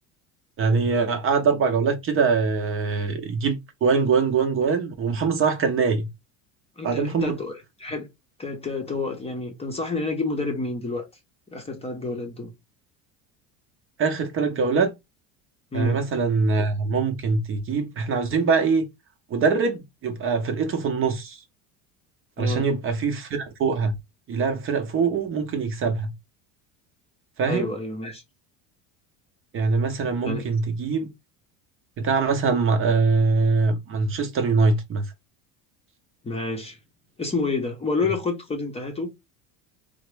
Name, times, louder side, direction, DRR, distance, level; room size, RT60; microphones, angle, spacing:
voice 1, 0.6-6.1 6.8-7.3 14.0-14.9 15.7-18.9 19.3-21.4 22.4-23.9 24.3-26.1 27.4-27.7 29.5-31.1 32.0-35.0, right 4 dB, 35° right, 0.7 m, -23 dB
voice 2, 6.8-8.1 8.4-11.1 11.5-12.5 15.7-16.1 22.4-22.6 27.5-28.2 30.2-30.5 36.2-36.8 37.2-39.1, left 3 dB, 15° left, 0.7 m, -29 dB
3.5 x 2.0 x 3.3 m
cardioid pair, 125°, 38 cm